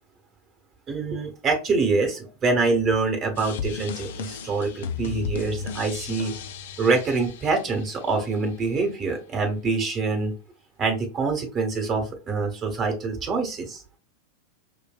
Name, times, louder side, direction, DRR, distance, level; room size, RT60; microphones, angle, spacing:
voice 1, 0.9-6.3 6.8-10.3 10.8-13.8, right 4 dB, 25° right, 4 dB, 1.3 m, -25 dB
sound 1, 3.4-8.3, left 6 dB, 55° left, 0.4 m, -35 dB
5.3 x 2.6 x 2.3 m, 0.30 s
figure-of-eight pair, 90°, 0 cm